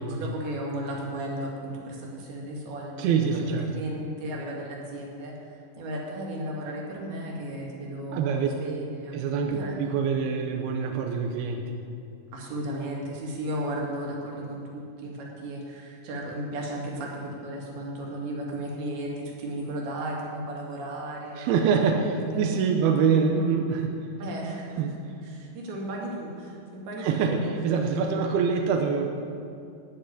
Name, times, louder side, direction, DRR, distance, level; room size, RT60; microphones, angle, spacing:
voice 1, 0.0-9.2 9.5-9.8 12.3-22.5 24.2-24.9 25.2-27.4, right 1 dB, 60° right, -2 dB, 4.0 m, -35 dB
voice 2, 3.0-3.8 8.1-8.5 9.1-11.6 21.4-23.9 24.8-24.9 27.0-29.1, right 6 dB, 75° right, 3 dB, 2.4 m, -25 dB
15.5 x 6.5 x 9.5 m, 2.5 s
omnidirectional pair, 5.4 m